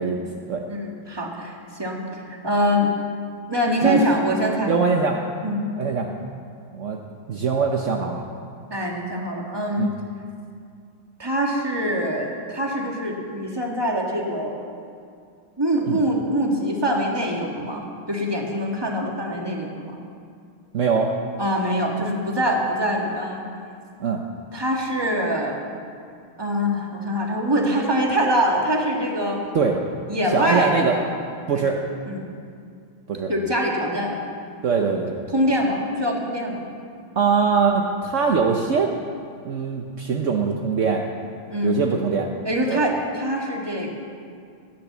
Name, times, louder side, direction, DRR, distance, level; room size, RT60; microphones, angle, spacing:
voice 1, 0.6-2.9 3.5-4.7 5.4-5.6 8.7-9.9 11.2-14.6 15.6-17.8 18.1-20.0 21.4-23.5 24.5-25.6 26.4-29.4 30.1-31.0 31.5-32.2 33.3-34.2 35.3-36.6 41.5-41.8 42.4-43.9, equal, 10° right, -1 dB, 1.7 m, -24 dB
voice 2, 4.7-5.2 5.8-6.1 6.7-7.0 7.3-8.2 9.8-9.9 15.9-16.0 20.7-21.1 24.0-24.2 29.5-29.8 30.3-31.0 31.5-31.8 33.1-33.3 34.6-35.4 37.2-38.9 39.4-41.0 41.6-42.3 42.7-42.8, right 5 dB, 60° right, 2 dB, 0.8 m, -22 dB
14.5 x 10.5 x 7.4 m, 2.3 s
omnidirectional pair, 2.4 m